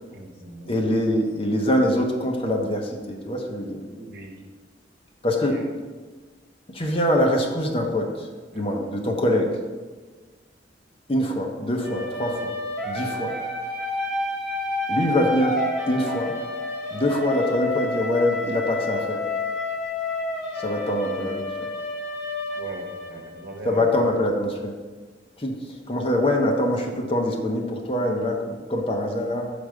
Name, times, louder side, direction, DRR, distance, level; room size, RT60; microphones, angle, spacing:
voice 1, 0.1-0.8 3.9-4.3 5.5-5.7 8.5-8.8 22.5-24.0, right 2 dB, 60° right, 1 dB, 1.1 m, -40 dB
voice 2, 0.7-3.8 5.2-5.6 6.7-9.6 11.1-12.5 12.8-13.3 14.9-15.6 15.9-16.4 16.9-19.2 20.6-21.5 23.6-24.7 25.4-25.6 25.9-29.5, left 1 dB, 30° left, 1 dB, 0.9 m, -24 dB
sound 1, 11.8-23.6, left 2 dB, ahead, 2.0 m, -29 dB
5.1 x 4.7 x 6.3 m, 1.3 s
head